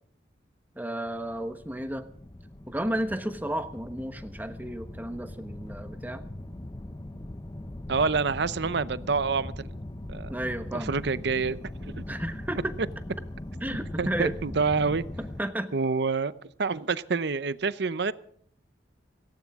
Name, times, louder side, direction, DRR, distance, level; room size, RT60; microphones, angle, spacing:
voice 1, 0.7-2.1 2.7-6.2 10.3-10.9 12.1-12.7 13.6-14.3 15.2-15.7, right 1 dB, 10° right, 8 dB, 1.1 m, -32 dB
sound 1, 1.1-15.4, left 1 dB, 20° left, 0.7 m, -40 dB
voice 2, 7.9-9.7 10.1-10.3 10.7-11.6 11.9-12.0 14.0-15.0 15.7-16.3 16.6-18.1, right 4 dB, 65° right, 16 dB, 0.7 m, -27 dB
17.5 x 17.0 x 3.6 m, 0.62 s
head